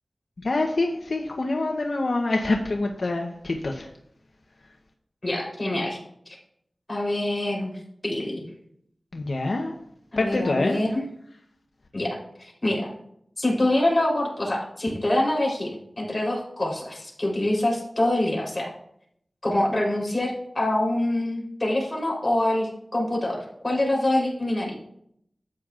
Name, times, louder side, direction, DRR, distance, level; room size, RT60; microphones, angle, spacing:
voice 1, 0.4-3.9 9.1-9.7 10.2-10.8, left 2 dB, 75° left, 2 dB, 0.8 m, -26 dB
voice 2, 5.2-6.0 6.3-6.4 6.9-8.5 10.1-11.1 11.9-12.9 13.4-18.7 19.4-24.7, left 1 dB, 35° left, -2 dB, 3.6 m, -25 dB
12.0 x 8.7 x 2.5 m, 0.72 s
wide cardioid pair, 55°, 0 cm